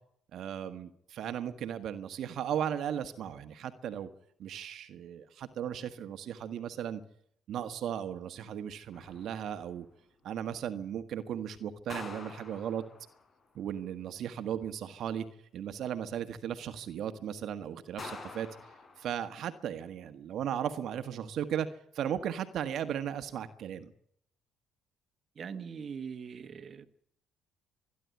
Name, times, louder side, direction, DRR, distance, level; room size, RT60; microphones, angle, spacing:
voice 1, 0.3-4.1 4.4-7.0 7.5-9.9 10.2-12.8 13.5-15.3 15.5-18.5 19.0-21.7 21.9-23.9, right 9 dB, 65° right, 1.5 m, -36 dB
sound 1, 8.9-9.8 11.9-13.4 18.0-19.5, left 3 dB, 40° left, 4.9 m, -47 dB
voice 2, 25.3-26.9, right 6 dB, 45° right, 1.5 m, -41 dB
25.5 x 11.0 x 9.5 m
supercardioid pair, 80°, 0 cm